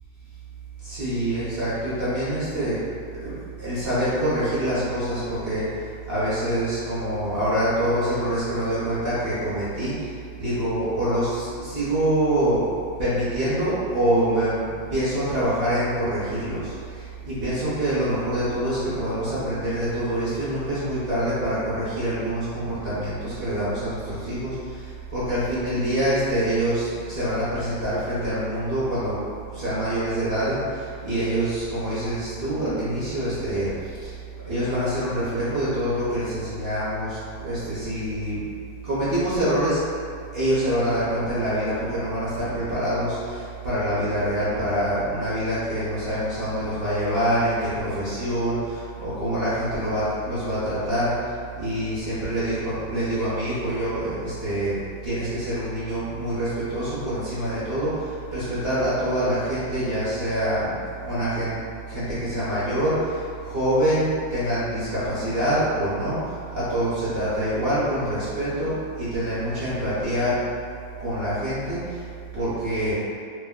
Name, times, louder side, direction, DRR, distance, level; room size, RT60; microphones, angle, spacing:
voice 1, 0.8-2.8 3.1-12.6 13.0-29.2 29.5-34.2 34.5-38.4 38.8-39.8 40.3-61.6 61.8-70.4 71.0-72.1 72.3-72.9, right 1 dB, 45° right, -12 dB, 0.9 m, -25 dB
2.6 x 2.1 x 3.6 m, 2.3 s
omnidirectional pair, 1.7 m